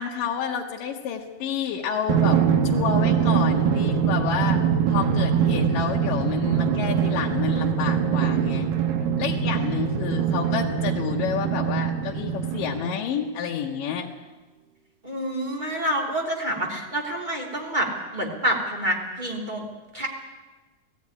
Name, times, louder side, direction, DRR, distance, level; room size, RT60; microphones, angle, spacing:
voice 1, 0.0-4.6 4.9-8.7 9.2-14.1, left 7 dB, 80° left, -2 dB, 2.9 m, -29 dB
Drum, 2.1-13.1, right 7 dB, 90° right, 3.0 m, -23 dB
voice 2, 15.0-17.9 18.1-19.7 19.9-20.1, right 1 dB, 15° right, 0 dB, 2.7 m, -27 dB
18.5 x 14.5 x 9.8 m, 1.3 s
omnidirectional pair, 3.8 m